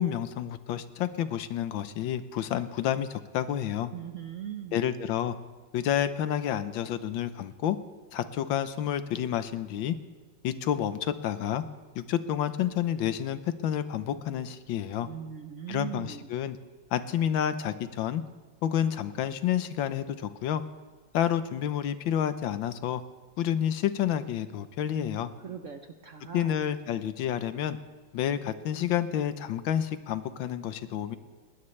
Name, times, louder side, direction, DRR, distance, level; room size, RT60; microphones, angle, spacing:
voice 1, 0.0-3.9 4.7-5.3 5.7-7.8 8.1-9.9 10.4-11.6 11.9-15.1 15.7-16.6 16.9-18.2 18.6-20.6 21.1-23.0 23.4-25.3 26.3-27.8 28.1-31.2, left 10 dB, 80° left, 12 dB, 1.5 m, -29 dB
voice 2, 3.9-4.9 15.0-16.3 25.4-26.6, right 8 dB, 55° right, 6 dB, 0.9 m, -40 dB
19.5 x 19.5 x 3.3 m, 1.4 s
omnidirectional pair, 2.1 m